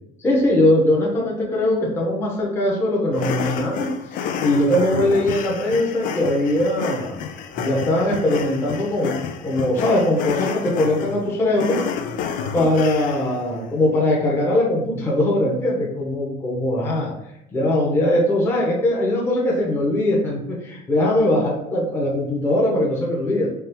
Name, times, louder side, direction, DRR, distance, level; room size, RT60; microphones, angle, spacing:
voice 1, 0.2-3.9 4.4-7.2 7.6-9.1 9.4-11.8 12.5-17.1 17.5-23.5, left 1 dB, 15° left, -5 dB, 0.7 m, -20 dB
sound 1, 3.1-13.4, left 7 dB, 50° left, 0.4 m, -30 dB
4.4 x 2.4 x 3.4 m, 0.79 s
cardioid pair, 170°, 18 cm